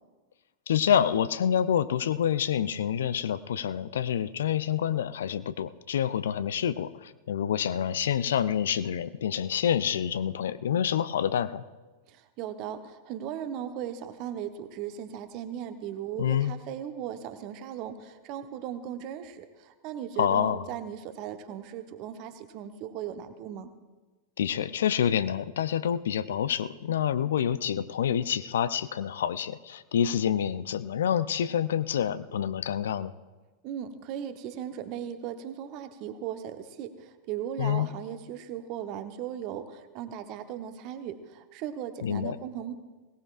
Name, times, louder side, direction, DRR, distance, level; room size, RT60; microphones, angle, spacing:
voice 1, 0.7-11.6 16.2-16.5 20.2-20.6 24.4-33.1 37.6-37.9 42.0-42.4, left 9 dB, 60° left, 15 dB, 0.4 m, -27 dB
voice 2, 12.1-23.7 33.6-42.7, right 9 dB, 40° right, 9 dB, 1.0 m, -37 dB
22.0 x 17.5 x 2.5 m, 1.3 s
figure-of-eight pair, 90°, 0 cm